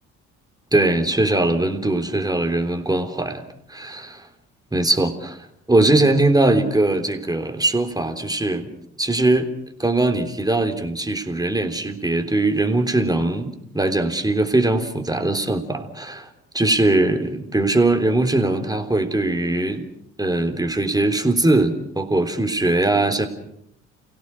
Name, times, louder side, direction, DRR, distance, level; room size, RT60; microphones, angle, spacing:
voice 1, 0.7-3.4 3.7-4.3 4.7-5.4 5.7-8.7 9.0-9.5 9.8-16.3 16.5-19.8 20.2-23.3, right 2 dB, 10° right, 6 dB, 3.6 m, -20 dB
30.0 x 17.0 x 6.4 m, 0.74 s
hypercardioid pair, 50°, 35 cm